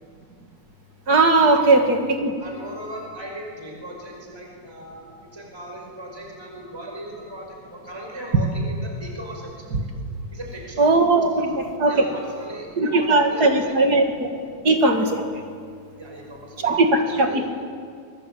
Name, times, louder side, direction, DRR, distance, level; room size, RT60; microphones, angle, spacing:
voice 1, 1.1-2.3 10.8-12.0 12.8-14.3 14.6-15.2 16.6-17.4, right 2 dB, 30° right, 4 dB, 2.2 m, -18 dB
voice 2, 2.4-9.7 10.3-10.9 11.3-11.6 11.8-14.0 16.0-17.4, equal, 5° right, 0 dB, 5.0 m, -38 dB
28.5 x 23.5 x 8.5 m, 2.2 s
omnidirectional pair, 3.9 m